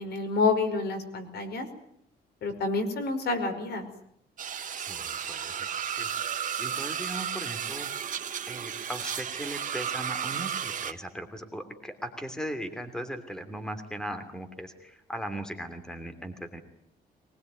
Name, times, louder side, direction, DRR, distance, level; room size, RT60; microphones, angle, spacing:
voice 1, 0.0-1.7 2.4-3.9, left 3 dB, 70° left, 7 dB, 5.2 m, -28 dB
sound 1, 4.4-10.9, right 8 dB, 50° right, 1.7 m, -33 dB
voice 2, 4.8-5.5 6.0-6.1 6.6-7.9 8.5-16.6, right 1 dB, 5° left, 8 dB, 3.1 m, -38 dB
23.5 x 20.5 x 9.4 m, 0.71 s
cardioid pair, 140°, 17 cm